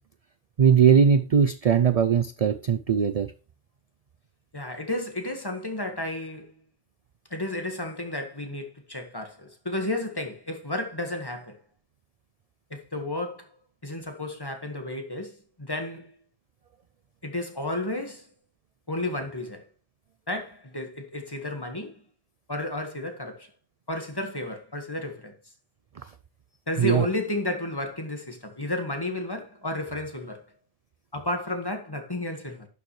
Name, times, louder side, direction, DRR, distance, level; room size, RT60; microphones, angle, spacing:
voice 1, 0.6-3.3 26.8-27.1, right 7 dB, 55° right, 0.4 m, -20 dB
voice 2, 4.5-6.5 7.3-11.6 12.7-13.5 13.8-16.2 17.2-18.3 18.9-19.6 20.3-22.0 22.5-23.5 23.9-25.3 26.7-30.4 31.1-32.7, left 1 dB, 20° left, 1.6 m, -32 dB
11.5 x 6.9 x 3.2 m
omnidirectional pair, 1.2 m